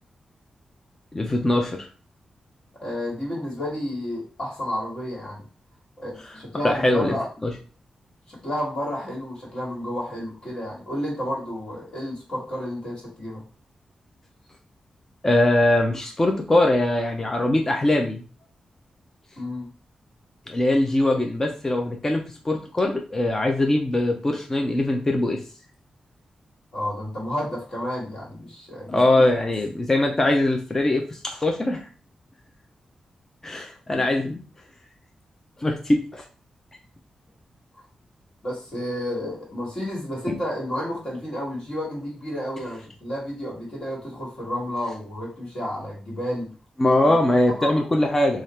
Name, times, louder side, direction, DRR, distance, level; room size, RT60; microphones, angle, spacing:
voice 1, 1.1-1.8 6.6-7.1 7.4-7.5 15.2-18.2 20.5-25.4 28.9-31.8 33.4-34.4 35.6-36.2 40.3-40.4 46.8-48.4, left 1 dB, 20° left, 3 dB, 0.5 m, -22 dB
voice 2, 2.8-5.4 6.0-7.3 8.3-13.4 19.4-19.7 26.7-29.3 38.4-46.5 47.0-47.1 47.4-47.8, left 1 dB, 45° left, -4 dB, 1.7 m, -31 dB
3.3 x 2.4 x 4.2 m, 0.37 s
wide cardioid pair, 150°, 2 cm